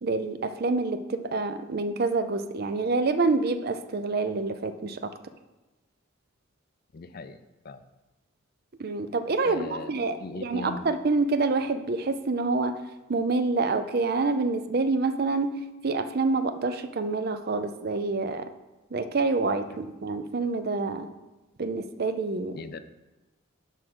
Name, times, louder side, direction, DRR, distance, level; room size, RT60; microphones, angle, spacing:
voice 1, 0.0-5.1 8.8-12.7 13.1-18.5 18.9-21.1 21.6-22.6, right 3 dB, 45° right, 10 dB, 0.5 m, -27 dB
voice 2, 6.9-7.8 9.4-9.9 10.2-10.9 22.5-22.8, left 3 dB, 45° left, 11 dB, 0.4 m, -39 dB
11.0 x 3.7 x 6.1 m, 1.1 s
head